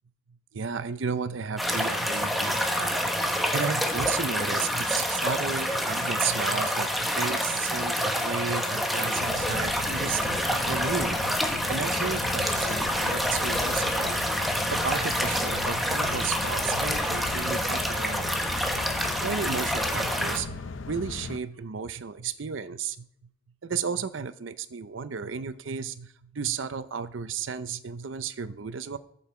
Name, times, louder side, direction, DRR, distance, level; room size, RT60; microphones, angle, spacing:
voice 1, 0.5-11.4 11.7-14.4 14.7-18.4 19.1-23.0 23.6-29.0, right 6 dB, 75° right, 14 dB, 0.6 m, -33 dB
sound 1, 1.6-20.4, equal, ahead, 1.1 m, -27 dB
sound 2, 9.1-21.4, left 4 dB, 75° left, 0.6 m, -37 dB
14.0 x 5.5 x 4.4 m, 0.71 s
head